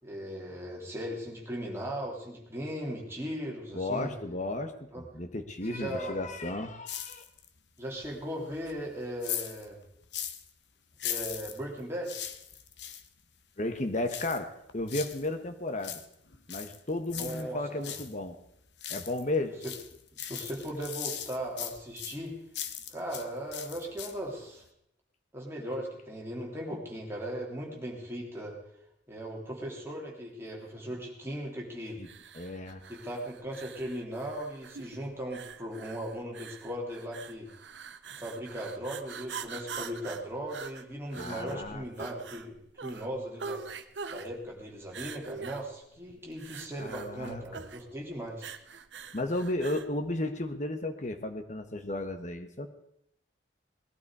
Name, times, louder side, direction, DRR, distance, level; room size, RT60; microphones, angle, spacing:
voice 1, 0.0-4.1 4.9-5.0 5.6-6.2 7.8-9.8 11.0-12.2 17.2-17.6 17.9-18.0 19.6-19.7 20.1-22.4 22.9-24.6 25.3-28.6 29.1-32.0 32.9-37.5 38.2-43.6 44.1-48.5, equal, 15° right, -2 dB, 3.2 m, -38 dB
voice 2, 3.7-7.2 13.6-16.0 16.5-18.4 18.9-19.5 32.0-32.1 32.3-32.8 41.1-41.8 46.8-47.4 49.1-52.7, left 2 dB, 40° left, 8 dB, 1.3 m, -34 dB
sound 1, 6.9-7.6 8.0-10.5 10.9-13.1 14.1-15.3 15.6-18.1 18.5-19.3 19.6-23.3 23.5-24.3 24.7-24.8, left 9 dB, 70° left, 1.1 m, -39 dB
sound 2, 32.0-49.9, right 5 dB, 75° right, 0.9 m, -44 dB
19.5 x 11.5 x 4.8 m, 0.76 s
head